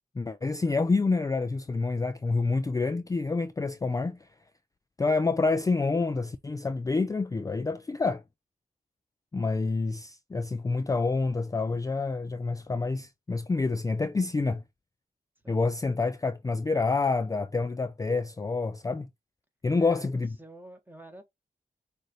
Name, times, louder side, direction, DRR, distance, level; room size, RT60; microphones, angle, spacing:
voice 1, 0.2-4.3 5.0-8.2 9.3-14.6 15.5-19.1 19.6-20.3, left 3 dB, 20° left, 0.4 m, -28 dB
voice 2, 19.8-20.1 20.4-21.2, right 1 dB, 10° right, 1.5 m, -47 dB
6.4 x 2.6 x 3.0 m
wide cardioid pair, 90°, 15 cm